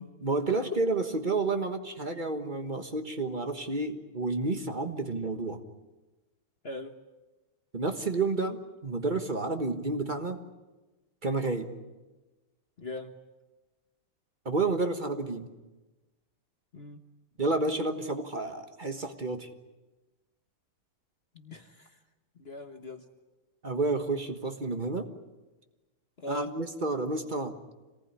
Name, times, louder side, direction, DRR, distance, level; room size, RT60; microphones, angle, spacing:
voice 1, 0.2-5.6 7.7-10.4 11.2-11.7 14.4-15.5 17.4-19.5 23.6-25.1 26.3-27.5, right 3 dB, 25° right, 7 dB, 1.2 m, -30 dB
voice 2, 12.8-13.1 16.7-17.0 21.3-21.9 22.4-23.0 26.2-26.5, left 2 dB, 35° left, 6 dB, 1.3 m, -39 dB
26.5 x 18.5 x 9.8 m, 1.2 s
omnidirectional pair, 2.4 m